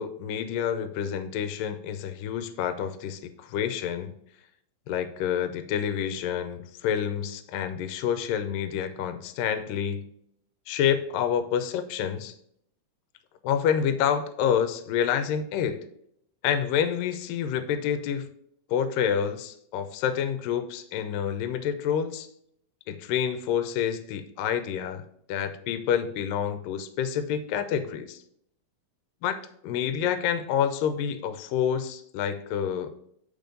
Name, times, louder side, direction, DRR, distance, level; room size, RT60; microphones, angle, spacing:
voice 1, 0.0-4.1 4.9-10.1 10.7-12.3 13.4-15.9 16.4-18.3 18.7-22.3 22.9-25.0 25.3-28.2 29.2-29.4 29.6-32.9, left 8 dB, 85° left, 10 dB, 2.3 m, -28 dB
7.1 x 5.3 x 3.8 m, 0.71 s
omnidirectional pair, 3.9 m